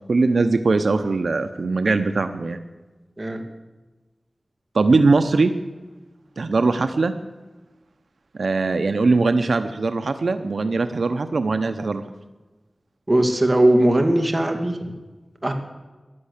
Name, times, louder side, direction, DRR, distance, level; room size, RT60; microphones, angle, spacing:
voice 1, 0.1-2.6 4.7-5.5 6.4-7.1 8.3-12.0, right 3 dB, 80° right, 9 dB, 0.8 m, -20 dB
voice 2, 13.1-14.8 15.4-15.5, right 1 dB, 25° right, 4 dB, 2.4 m, -19 dB
14.5 x 11.5 x 8.2 m, 1.2 s
wide cardioid pair, 85°, 0 cm